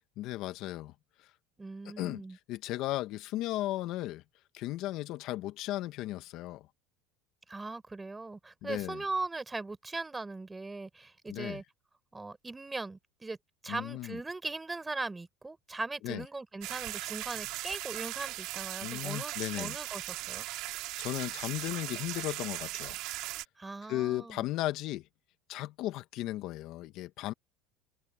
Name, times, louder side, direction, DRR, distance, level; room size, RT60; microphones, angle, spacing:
voice 1, 0.2-0.9 2.0-2.2 2.5-4.2 4.5-6.7 8.6-9.0 11.3-11.6 13.7-14.2 16.0-16.2 18.8-19.8 20.6-23.0 23.9-25.0 25.5-27.3, left 16 dB, 60° left, 1.3 m, -36 dB
voice 2, 1.6-2.4 7.5-11.6 12.1-13.4 13.6-20.5 23.6-24.5, right 3 dB, 15° right, 4.3 m, -39 dB
sound 1, 16.6-23.4, right 18 dB, 65° right, 1.9 m, -38 dB
open air
supercardioid pair, 110°, 0 cm